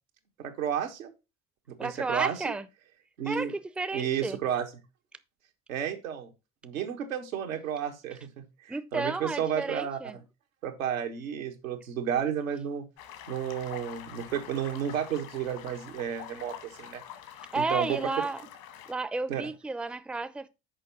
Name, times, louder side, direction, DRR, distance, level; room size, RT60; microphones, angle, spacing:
voice 1, 0.4-1.1 1.7-2.5 3.2-3.5 3.9-4.7 5.7-6.3 6.6-10.2 10.6-12.9 13.3-17.0 17.5-18.1 19.3-19.4, right 9 dB, 85° right, 1.5 m, -32 dB
voice 2, 1.8-2.7 3.3-4.4 8.7-10.2 17.5-18.4 18.9-20.5, right 3 dB, 5° right, 0.6 m, -32 dB
sound 1, 13.0-18.9, left 10 dB, 70° left, 1.8 m, -46 dB
6.7 x 5.2 x 5.9 m
hypercardioid pair, 55°, 40 cm